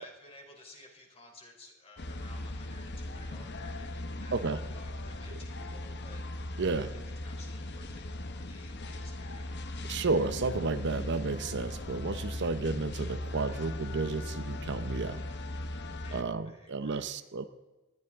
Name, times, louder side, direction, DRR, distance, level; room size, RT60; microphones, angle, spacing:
voice 1, 0.0-6.2 6.6-10.0 15.9-17.2, left 2 dB, 30° left, 1 dB, 3.7 m, -55 dB
sound 1, 2.0-16.2, left 1 dB, 50° left, 1.0 m, -38 dB
voice 2, 6.6-6.9 9.9-15.2 16.1-17.4, right 3 dB, 55° right, 11 dB, 0.7 m, -32 dB
19.5 x 12.5 x 3.6 m, 1.1 s
head